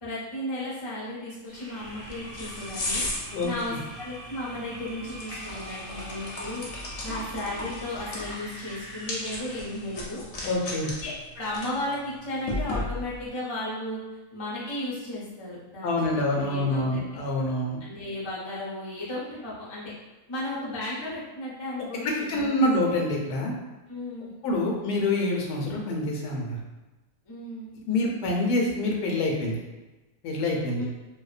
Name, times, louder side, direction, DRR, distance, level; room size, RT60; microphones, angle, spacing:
voice 1, 0.0-3.1 3.4-10.2 11.0-14.0 14.3-17.0 17.8-19.9 20.3-22.7 23.9-24.4 27.3-27.7 30.8-30.9, left 1 dB, 40° left, -8 dB, 0.4 m, -35 dB
sound 1, 1.5-10.0, equal, 50° right, 0.4 m, -44 dB
sound 2, 1.8-13.3, left 2 dB, 65° left, 0.8 m, -37 dB
voice 2, 10.4-10.9 15.8-17.8 22.0-23.5 24.4-26.6 27.9-29.6 30.2-30.9, left 1 dB, 85° left, 0 dB, 1.1 m, -26 dB
2.7 x 2.1 x 2.4 m, 1.1 s
omnidirectional pair, 1.7 m